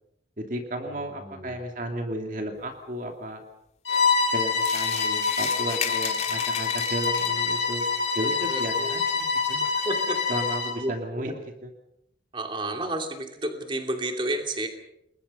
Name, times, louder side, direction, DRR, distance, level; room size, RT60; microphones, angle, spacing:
voice 1, 0.4-3.4 4.3-7.8 8.1-9.6 10.3-11.7, right 1 dB, 45° right, 4 dB, 2.5 m, -33 dB
voice 2, 1.2-1.6 8.5-9.0 9.6-10.5 10.8-11.3 12.3-14.7, right 1 dB, 30° right, 5 dB, 2.8 m, -32 dB
Bowed string instrument, 3.8-10.8, left 5 dB, 85° left, 6.1 m, -26 dB
sound 1, 4.6-7.5, left 8 dB, 40° left, 2.8 m, -34 dB
29.5 x 21.5 x 5.6 m, 0.78 s
head